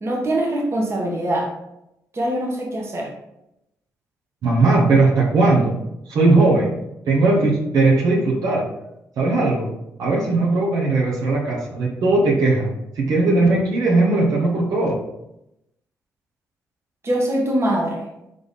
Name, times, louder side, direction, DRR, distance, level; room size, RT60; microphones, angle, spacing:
voice 1, 0.0-1.5 2.1-3.1 17.0-18.1, right 1 dB, 40° right, -1 dB, 1.4 m, -23 dB
voice 2, 4.4-5.8 6.1-6.7 7.1-8.7 9.2-9.7 10.0-12.7 12.9-15.0, right 2 dB, 70° right, -4 dB, 1.1 m, -18 dB
4.2 x 3.4 x 3.5 m, 0.84 s
supercardioid pair, 55°, 7 cm